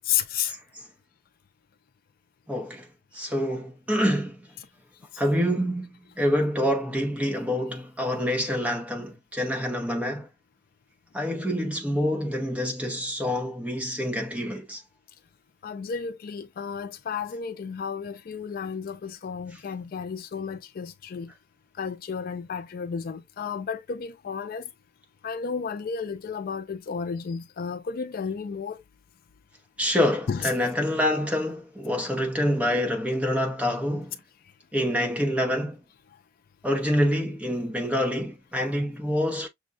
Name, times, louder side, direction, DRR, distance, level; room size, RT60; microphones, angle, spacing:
voice 1, 0.1-0.5 15.6-21.3 21.8-24.6 25.2-28.8 30.3-30.5, left 6 dB, 55° left, 0.4 m, -32 dB
voice 2, 2.5-2.9 3.1-4.5 5.2-10.3 11.1-14.8 29.8-34.2 34.7-35.8 36.6-39.5, equal, 5° right, 0.8 m, -26 dB
6.1 x 2.2 x 2.5 m
head